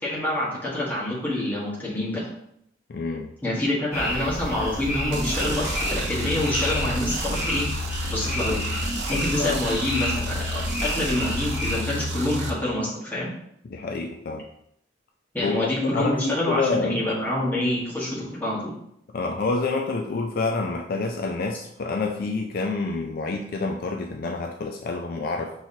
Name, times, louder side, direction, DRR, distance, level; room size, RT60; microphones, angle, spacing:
voice 1, 0.0-2.3 3.4-8.6 9.1-13.3 15.3-18.7, left 1 dB, 10° left, -7 dB, 1.4 m, -27 dB
voice 2, 2.9-3.3 9.4-9.6 13.6-14.4 15.4-16.9 19.1-25.5, left 3 dB, 55° left, 2 dB, 0.4 m, -28 dB
sound 1, 3.9-11.8, equal, 15° right, 1.5 m, -30 dB
sound 2, 5.1-12.5, equal, 75° right, 0.7 m, -30 dB
5.6 x 3.1 x 2.7 m, 0.74 s
head